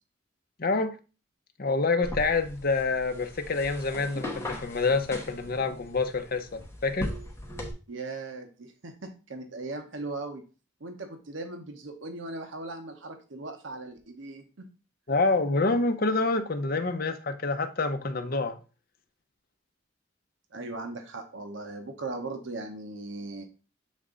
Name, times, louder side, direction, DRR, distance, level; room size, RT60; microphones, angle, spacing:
voice 1, 0.6-1.0 1.6-7.1 15.1-18.6, left 3 dB, 50° left, 0.7 m, -27 dB
sound 1, 2.0-7.7, left 1 dB, 15° left, 1.2 m, -39 dB
voice 2, 7.9-10.4 10.8-14.7 20.5-23.4, right 2 dB, 85° right, 0.9 m, -38 dB
7.3 x 3.5 x 3.8 m
head